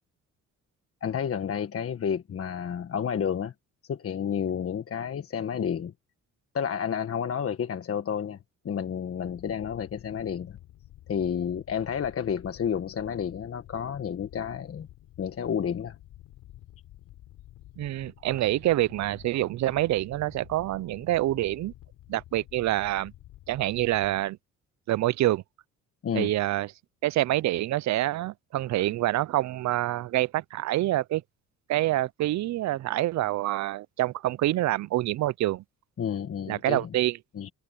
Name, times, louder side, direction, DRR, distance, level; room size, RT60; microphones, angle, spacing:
voice 1, 1.0-3.5 3.9-5.9 6.5-8.4 8.6-10.6 11.1-14.9 15.2-15.9 26.0-26.3 36.0-36.9 37.3-37.5, left 8 dB, 50° left, 1.4 m, -30 dB
sound 1, 9.2-24.3, left 14 dB, 90° left, 3.9 m, -51 dB
voice 2, 17.8-21.7 22.1-23.1 23.5-24.4 24.9-25.4 26.1-26.7 27.0-31.2 31.7-35.6 36.5-37.2, right 15 dB, 65° right, 0.5 m, -26 dB
cardioid pair, 90°, 30 cm